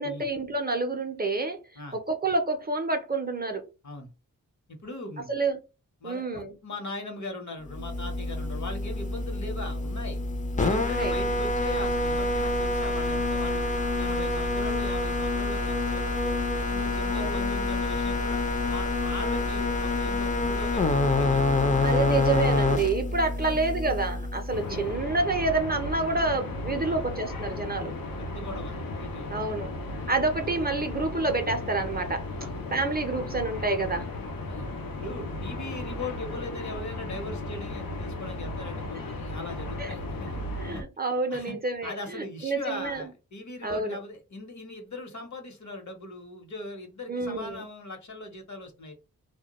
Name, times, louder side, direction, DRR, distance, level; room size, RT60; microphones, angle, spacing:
voice 1, 0.0-1.6 1.9-3.6 5.3-5.6 6.0-6.5 10.8-11.2 17.1-17.5 21.8-27.9 29.3-29.7 30.1-32.2 32.7-34.1 39.8-39.9 40.6-43.0 43.6-44.0 47.1-47.6, right 3 dB, 30° right, 0.5 m, -28 dB
voice 2, 4.7-5.3 6.0-10.2 10.6-13.6 14.0-16.3 16.7-21.9 23.4-23.6 24.5-24.9 26.9-27.0 28.2-29.4 32.4-32.6 34.5-34.7 35.0-40.3 40.7-40.8 41.3-41.5 41.8-49.0, left 2 dB, 55° left, 0.9 m, -40 dB
sound 1, 7.7-24.9, left 2 dB, 25° left, 0.5 m, -27 dB
sound 2, 24.5-40.8, left 2 dB, 85° left, 0.6 m, -35 dB
2.2 x 2.1 x 2.9 m
cardioid pair, 60°, 33 cm